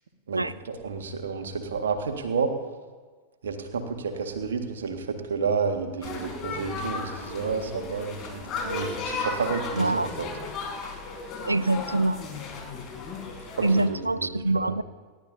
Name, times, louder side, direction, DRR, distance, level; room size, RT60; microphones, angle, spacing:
voice 1, 0.3-2.5 3.4-10.3 13.6-14.3 14.5-14.8, right 5 dB, 65° right, 5 dB, 1.8 m, -30 dB
sound 1, 6.0-13.8, left 3 dB, 30° left, 4.6 m, -35 dB
voice 2, 9.8-10.1 11.4-12.2 13.6-14.8, right 2 dB, 85° right, 18 dB, 0.4 m, -24 dB
29.5 x 12.0 x 2.8 m, 1.4 s
figure-of-eight pair, 90°, 0 cm